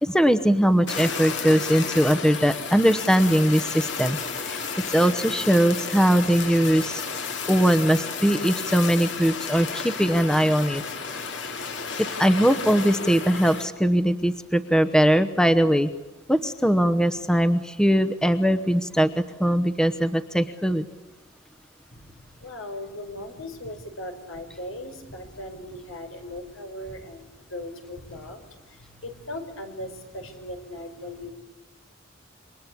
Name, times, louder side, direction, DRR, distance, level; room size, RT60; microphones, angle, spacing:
voice 1, 0.0-7.0 7.5-10.8 12.0-15.9 16.3-20.8, equal, 5° left, 11 dB, 0.9 m, -21 dB
Fire, 0.9-13.7, left 5 dB, 60° left, 2.7 m, -32 dB
voice 2, 21.9-31.3, left 1 dB, 85° left, 6 dB, 4.8 m, -38 dB
28.0 x 24.0 x 8.5 m, 1.1 s
head